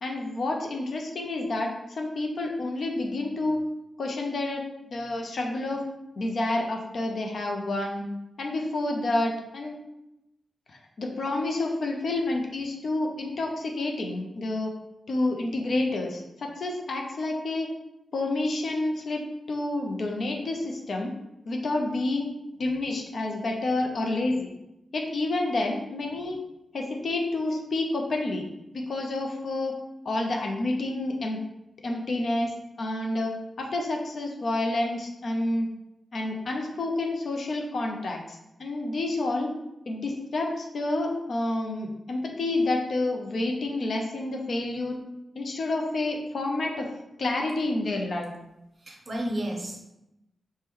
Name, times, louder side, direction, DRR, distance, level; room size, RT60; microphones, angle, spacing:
voice 1, 0.0-3.6 4.0-4.6 4.9-5.8 6.2-8.0 8.4-9.8 10.7-14.7 15.1-17.7 18.1-19.2 19.5-21.1 21.5-22.3 22.6-24.5 24.9-26.4 26.7-28.5 28.7-29.7 30.0-31.4 31.8-32.5 32.8-35.7 36.1-39.5 39.9-45.0 45.4-46.9 47.2-48.3, left 2 dB, 65° left, 1 dB, 0.5 m, -29 dB
voice 2, 48.8-49.8, right 1 dB, 40° right, 1 dB, 0.6 m, -32 dB
3.0 x 2.1 x 3.5 m, 0.89 s
wide cardioid pair, 100°, 0 cm